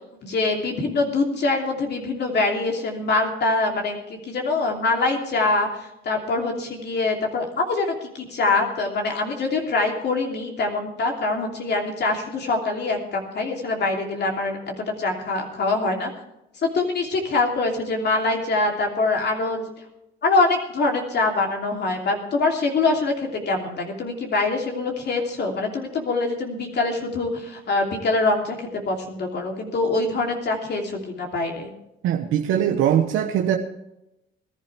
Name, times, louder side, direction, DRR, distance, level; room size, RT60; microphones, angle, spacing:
voice 1, 0.2-16.1 16.6-19.7 20.2-31.7, left 3 dB, 60° left, 1 dB, 3.1 m, -24 dB
voice 2, 32.0-33.6, right 10 dB, 90° right, 3 dB, 1.1 m, -21 dB
21.0 x 11.5 x 3.4 m, 0.87 s
cardioid pair, 90°, 20 cm